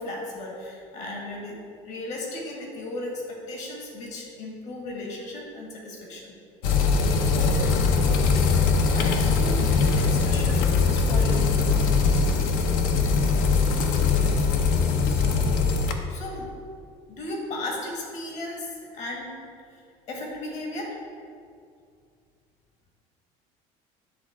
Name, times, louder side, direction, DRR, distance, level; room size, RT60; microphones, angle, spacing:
voice 1, 0.0-1.6 1.8-6.3 7.2-7.6 8.9-11.5 14.0-14.1 15.0-15.7 16.1-16.5 17.1-19.3 19.7-19.8 20.1-21.0, left 2 dB, 55° left, -1 dB, 1.7 m, -36 dB
sound 1, 6.6-15.9, left 4 dB, 80° left, 0.6 m, -21 dB
10.0 x 3.7 x 3.6 m, 2.2 s
cardioid pair, 130°, 14 cm